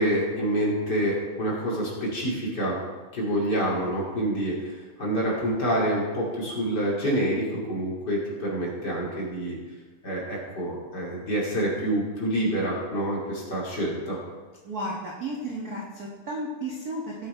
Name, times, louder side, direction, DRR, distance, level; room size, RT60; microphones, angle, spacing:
voice 1, 0.0-2.8 3.1-9.6 10.0-14.2, right 1 dB, 30° left, -4 dB, 2.9 m, -27 dB
voice 2, 14.6-17.3, right 1 dB, 65° right, -3 dB, 0.9 m, -33 dB
17.5 x 6.7 x 4.5 m, 1.3 s
omnidirectional pair, 3.9 m